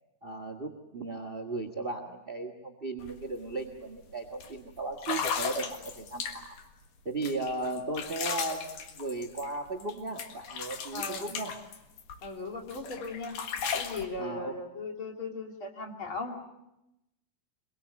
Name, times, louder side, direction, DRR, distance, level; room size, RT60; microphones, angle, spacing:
voice 1, 0.2-6.5 7.0-11.6 14.2-14.6, right 2 dB, 40° right, 7 dB, 0.7 m, -36 dB
sound 1, 3.0-3.1 3.5-3.8 4.4-4.5 5.0-6.6 7.2-9.9 10.2-12.3 12.7-14.0, left 6 dB, 70° left, 3.3 m, -36 dB
voice 2, 10.9-11.3 12.2-13.4 13.7-16.4, left 3 dB, 35° left, 1 dB, 3.5 m, -38 dB
24.5 x 22.5 x 8.2 m, 0.88 s
omnidirectional pair, 4.1 m